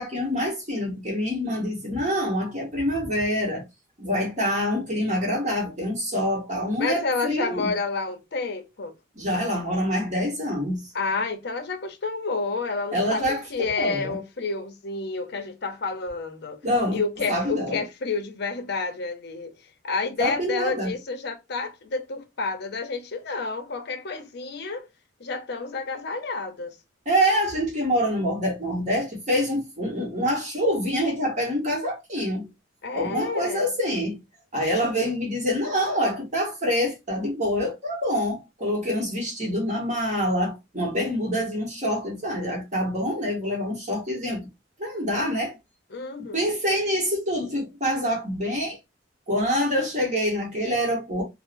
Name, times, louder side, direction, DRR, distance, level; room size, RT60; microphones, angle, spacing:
voice 1, 0.0-3.6 4.0-7.7 9.2-10.9 12.9-14.1 16.6-17.0 17.3-17.8 20.2-20.9 27.1-32.5 32.9-34.2 34.5-44.4 44.8-45.6 46.2-48.8 49.3-51.2, equal, 40° right, 1.2 m, -26 dB
voice 2, 6.8-8.9 10.9-16.6 16.9-19.6 19.8-24.9 25.2-26.8 32.8-33.7 45.9-46.5, left 4 dB, 60° left, 0.6 m, -30 dB
3.6 x 2.0 x 2.5 m
head